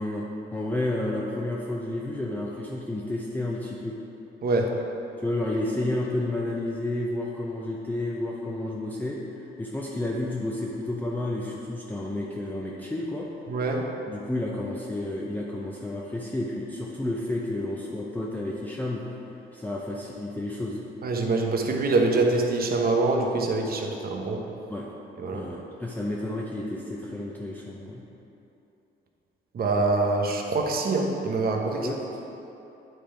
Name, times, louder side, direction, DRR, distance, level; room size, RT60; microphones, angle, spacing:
voice 1, 0.0-4.0 5.2-9.2 9.6-13.3 14.1-19.0 19.5-20.8 24.7-24.9 25.3-28.0 31.7-32.0, left 1 dB, 10° left, -4 dB, 0.6 m, -31 dB
voice 2, 4.4-4.8 13.5-13.9 21.0-24.4 25.2-25.5 29.5-31.9, right 3 dB, 50° right, 1 dB, 0.9 m, -25 dB
9.3 x 3.4 x 4.4 m, 2.9 s
cardioid pair, 90°, 20 cm